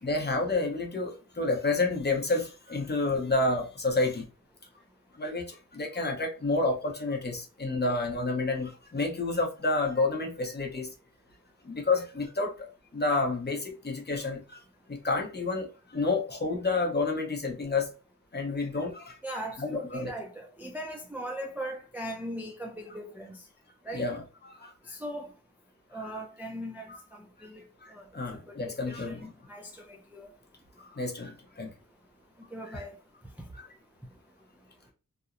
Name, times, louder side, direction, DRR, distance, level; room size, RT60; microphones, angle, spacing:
voice 1, 0.0-4.3 5.1-10.9 11.6-14.6 14.9-17.9 18.3-19.2 19.6-20.1 23.9-24.7 27.8-29.3 30.8-31.7 32.7-32.8 33.5-33.7, left 3 dB, 30° left, 0.7 m, -30 dB
voice 2, 19.2-23.4 23.8-24.1 24.9-25.3 25.9-27.6 27.9-28.0 28.7-30.3 32.5-32.9 33.4-33.5, right 1 dB, 5° right, 0.3 m, -39 dB
2.8 x 2.0 x 2.4 m
wide cardioid pair, 110°, 33 cm